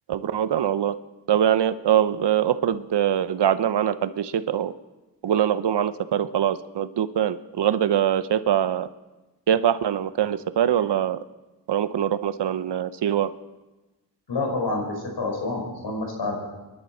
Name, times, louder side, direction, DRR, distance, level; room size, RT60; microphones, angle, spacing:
voice 1, 0.1-0.9 1.3-4.7 5.2-8.9 9.5-11.2 11.7-13.3, right 9 dB, 80° right, 13 dB, 0.7 m, -23 dB
voice 2, 14.3-16.4, left 3 dB, 85° left, 0 dB, 5.2 m, -28 dB
27.5 x 11.5 x 4.4 m, 1.1 s
wide cardioid pair, 115°, 41 cm